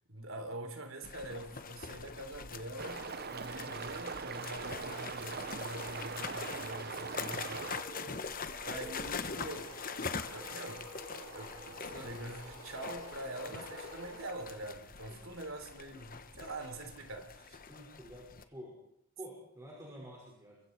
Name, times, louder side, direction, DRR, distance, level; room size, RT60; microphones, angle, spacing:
voice 1, 0.1-7.7 8.7-17.6, right 1 dB, 70° right, 3.7 m, -45 dB
sound 1, 1.0-18.4, left 5 dB, 40° left, 1.2 m, -44 dB
sound 2, 2.8-7.8, right 5 dB, 50° right, 0.9 m, -41 dB
sound 3, 5.7-14.8, right 1 dB, 85° right, 7.6 m, -50 dB
voice 2, 17.7-18.8 19.2-20.6, equal, 15° right, 5.6 m, -49 dB
29.5 x 23.0 x 4.6 m
head